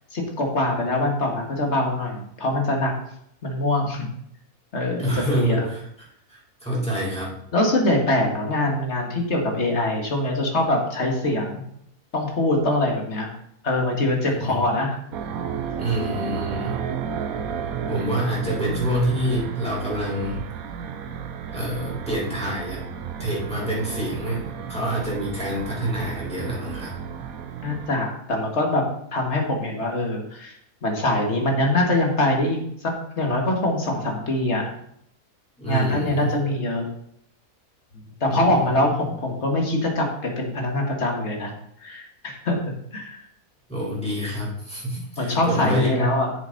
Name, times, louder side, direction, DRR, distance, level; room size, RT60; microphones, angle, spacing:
voice 1, 0.1-2.9 3.4-4.1 4.7-5.7 7.5-11.6 12.1-13.3 13.6-15.0 17.3-17.5 27.6-28.8 29.1-30.6 30.8-34.8 35.7-36.9 38.2-41.5 41.8-42.6 42.9-43.2 45.2-46.3, left 1 dB, 50° left, 1 dB, 2.1 m, -23 dB
voice 2, 5.0-5.8 6.3-7.3 14.2-14.7 15.8-16.9 17.9-20.5 21.5-22.9 23.2-26.9 35.6-36.3 38.3-38.8 43.7-46.1, right 1 dB, 5° left, -7 dB, 3.9 m, -27 dB
sound 1, 15.1-27.9, right 7 dB, 70° right, 1.2 m, -33 dB
8.4 x 7.1 x 4.1 m, 0.71 s
omnidirectional pair, 1.6 m